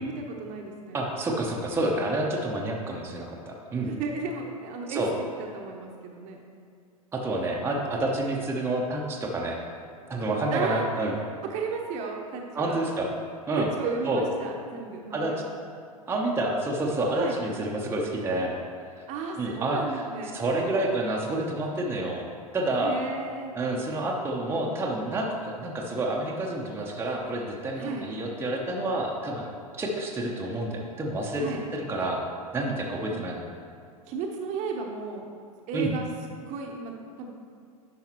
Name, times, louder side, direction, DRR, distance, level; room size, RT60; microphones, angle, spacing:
voice 1, 0.0-1.0 3.8-5.0 5.4-6.4 10.5-11.1 11.4-12.8 13.6-15.4 17.1-17.4 19.1-20.4 22.8-23.5 27.7-28.1 31.4-31.6 33.1-33.2 34.0-35.3 35.7-36.1 36.5-36.9 37.2-37.3, right 4 dB, 40° right, 1 dB, 0.9 m, -34 dB
voice 2, 0.9-3.9 4.9-5.1 7.1-9.6 10.1-11.1 12.5-13.1 13.5-13.7 14.1-14.2 15.1-15.3 16.1-18.6 19.4-20.0 20.3-22.2 22.5-23.0 23.5-29.5 29.8-31.4 31.7-32.2 32.5-33.4 35.7-35.9, right 2 dB, 10° right, -2 dB, 0.8 m, -28 dB
10.5 x 5.7 x 3.0 m, 2.3 s
figure-of-eight pair, 95°, 19 cm